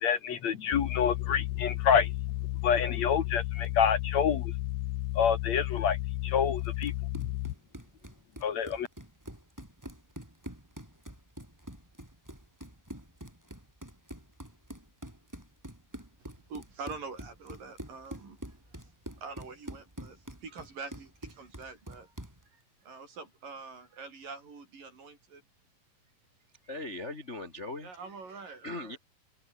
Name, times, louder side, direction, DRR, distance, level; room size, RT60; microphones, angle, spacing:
voice 1, 0.0-2.1 2.6-4.5 5.2-6.0 6.2-6.9 8.4-8.9, left 7 dB, 60° left, 2.6 m, -27 dB
sound 1, 0.7-7.5, left 17 dB, 85° left, 2.5 m, -33 dB
Run, 6.6-22.4, right 1 dB, 5° right, 4.7 m, -46 dB
voice 2, 16.2-18.4 18.7-18.9 19.2-22.1 22.8-25.4 27.8-29.0, right 4 dB, 75° right, 7.8 m, -45 dB
voice 3, 26.6-27.9 28.3-29.0, left 2 dB, 30° left, 1.3 m, -40 dB
open air
omnidirectional pair, 3.9 m